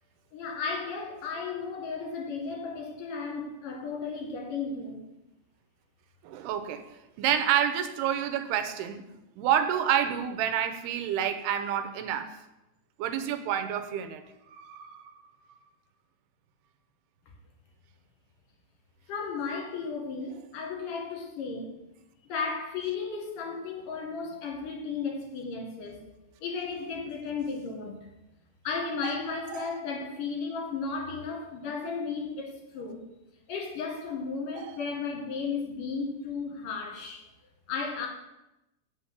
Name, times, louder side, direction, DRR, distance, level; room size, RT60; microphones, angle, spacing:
voice 1, 0.3-5.0 19.1-21.8 22.3-26.0 26.4-28.0 28.6-33.1 33.5-37.2 37.7-38.1, left 5 dB, 60° left, 1 dB, 2.9 m, -34 dB
voice 2, 6.2-6.9 7.2-9.1 9.4-12.3 13.0-15.0 29.0-29.2 29.5-29.7 34.6-34.7, right 10 dB, 85° right, 9 dB, 2.7 m, -29 dB
8.0 x 6.0 x 7.9 m, 0.92 s
omnidirectional pair, 4.7 m